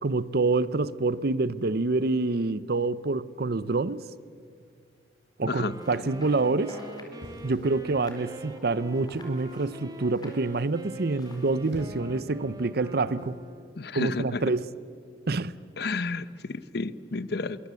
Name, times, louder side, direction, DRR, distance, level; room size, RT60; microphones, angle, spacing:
voice 1, 0.0-4.0 5.4-6.8 7.4-13.4 13.9-14.7 15.3-15.5, right 3 dB, 60° right, 0.7 m, -27 dB
Wind instrument woodwind instrument, 5.5-13.8, right 1 dB, 20° right, 1.7 m, -44 dB
sound 1, 5.7-12.0, left 1 dB, 25° left, 3.8 m, -50 dB
sound 2, 7.2-8.2 9.0-9.4 11.3-12.2 13.2-13.5, equal, 80° right, 4.2 m, -46 dB
voice 2, 13.8-14.4 15.8-17.6, left 3 dB, 65° left, 0.8 m, -31 dB
25.0 x 23.0 x 8.3 m
head